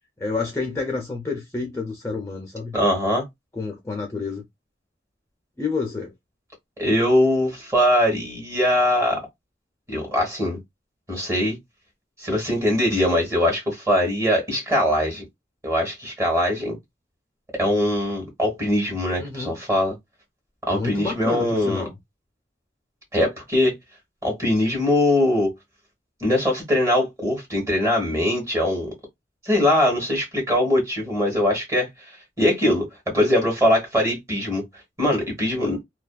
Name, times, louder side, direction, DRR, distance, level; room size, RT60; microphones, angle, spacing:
voice 1, 0.2-2.8 3.5-4.5 5.6-6.1 19.2-19.6 20.7-21.9, left 4 dB, 15° left, 0.4 m, -29 dB
voice 2, 2.7-3.2 6.8-9.2 9.9-10.6 11.1-11.6 12.2-15.2 15.6-16.8 17.6-19.9 20.7-21.8 23.1-23.7 24.2-25.5 26.2-28.9 29.4-31.9 32.4-34.6 35.0-35.8, left 1 dB, 15° right, 1.1 m, -21 dB
2.5 x 2.2 x 2.2 m
head